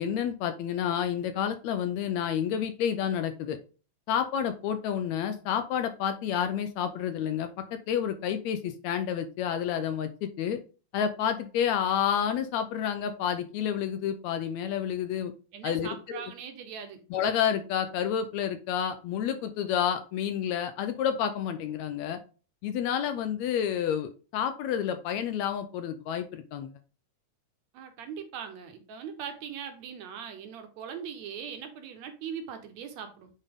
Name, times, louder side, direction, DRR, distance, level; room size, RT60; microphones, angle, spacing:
voice 1, 0.0-3.6 4.1-10.6 10.9-15.3 15.6-16.3 17.1-22.2 22.6-26.7, left 9 dB, 75° left, 9 dB, 1.7 m, -29 dB
voice 2, 15.5-17.0 27.7-33.3, right 7 dB, 65° right, 7 dB, 2.1 m, -40 dB
8.8 x 4.3 x 3.5 m, 0.35 s
omnidirectional pair, 3.6 m